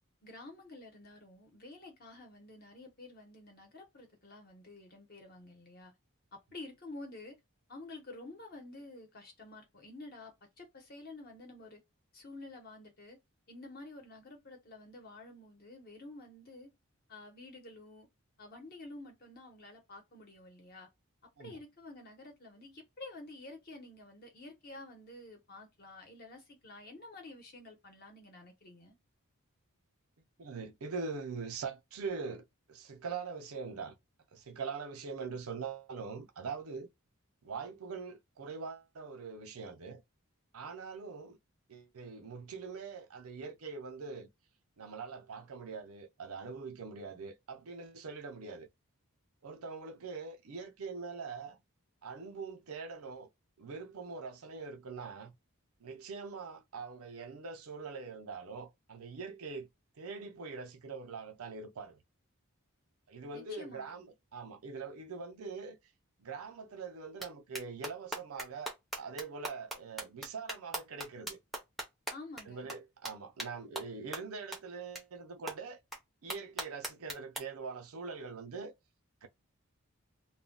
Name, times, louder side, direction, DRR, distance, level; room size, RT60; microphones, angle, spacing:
voice 1, 0.2-5.9 6.3-7.4 7.7-11.8 12.1-13.2 13.5-16.7 17.1-18.1 18.4-20.9 21.4-29.0 63.3-64.0 72.1-72.7, left 2 dB, 45° left, 0.9 m, -50 dB
voice 2, 30.4-33.9 34.3-36.9 37.4-40.0 40.5-41.4 41.7-44.3 44.8-48.7 49.4-51.6 52.0-53.3 53.6-55.3 55.8-59.7 60.0-62.0 63.1-64.1 64.3-65.8 66.2-71.4 72.5-75.8 76.2-78.7 79.2-79.3, right 4 dB, 75° right, 0.6 m, -43 dB
sound 1, 67.2-67.3 67.5-72.4 72.7-72.8 73.0-73.1 73.4-73.5 73.7-73.8 74.1-74.2 74.5-74.6 74.9-75.0 75.5-75.6 75.9-76.0 76.3-77.4, right 1 dB, ahead, 0.6 m, -39 dB
2.2 x 2.2 x 3.7 m
head